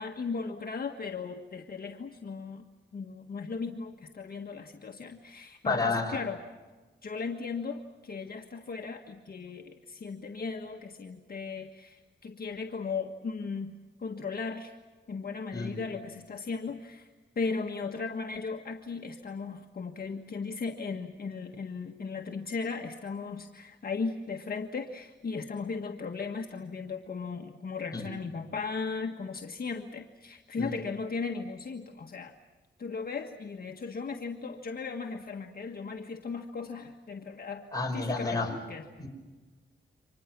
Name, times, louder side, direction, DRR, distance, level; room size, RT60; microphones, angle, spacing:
voice 1, 0.0-2.6 2.9-6.4 7.0-13.7 14.0-14.8 15.1-17.1 17.3-32.3 32.8-37.6 37.9-38.9, left 4 dB, 50° left, 2 dB, 1.6 m, -37 dB
voice 2, 5.6-6.2 15.5-15.8 27.9-28.1 30.6-30.7 37.7-38.5 39.0-39.1, left 3 dB, 20° left, 1 dB, 5.6 m, -30 dB
30.0 x 26.0 x 6.1 m, 1.3 s
wide cardioid pair, 125°, 20 cm